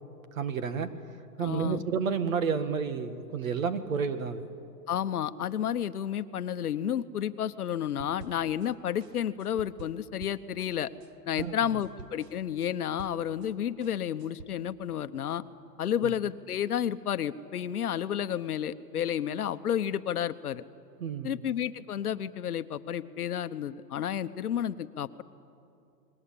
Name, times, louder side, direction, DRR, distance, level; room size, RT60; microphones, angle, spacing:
voice 1, 0.3-0.9 1.4-4.5 11.4-11.5 16.0-16.1 21.0-21.4, right 6 dB, 55° right, 10 dB, 1.8 m, -30 dB
voice 2, 1.4-1.8 4.9-10.9 11.3-15.4 15.8-20.6 21.2-25.2, left 9 dB, 65° left, 12 dB, 1.0 m, -31 dB
sound 1, 8.0-8.7 9.0-13.5 13.8-14.5, right 4 dB, 75° right, 1.5 m, -49 dB
29.5 x 21.0 x 8.7 m, 2.6 s
hypercardioid pair, 170°, 49 cm